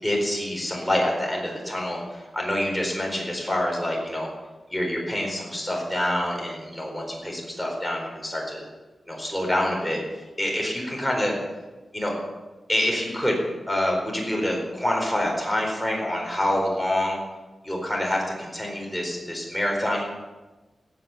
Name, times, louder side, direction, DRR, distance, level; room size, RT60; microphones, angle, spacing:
voice 1, 0.0-2.0 2.3-4.3 4.7-8.6 9.1-10.0 10.4-11.3 11.9-12.1 12.7-13.4 13.7-17.2 17.6-20.0, left 1 dB, ahead, -1 dB, 4.2 m, -26 dB
16.5 x 8.9 x 7.1 m, 1.2 s
wide cardioid pair, 125°, 0 cm